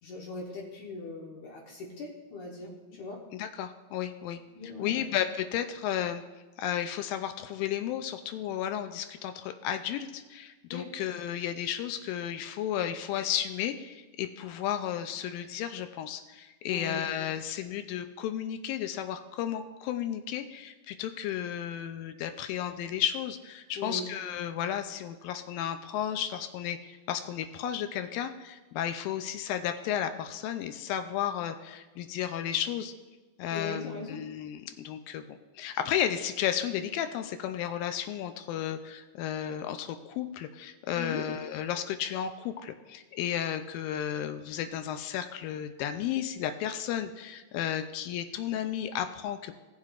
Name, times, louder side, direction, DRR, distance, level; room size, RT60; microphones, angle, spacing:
voice 1, 0.0-3.2 4.6-5.0 10.7-10.9 16.7-17.0 23.8-24.1 33.5-34.2 40.9-41.2, left 3 dB, 65° left, -3 dB, 2.2 m, -39 dB
voice 2, 3.3-4.4 4.8-6.2 6.6-32.9 33.4-49.5, left 10 dB, 80° left, 8 dB, 2.2 m, -33 dB
18.5 x 7.5 x 2.4 m, 1.2 s
omnidirectional pair, 4.2 m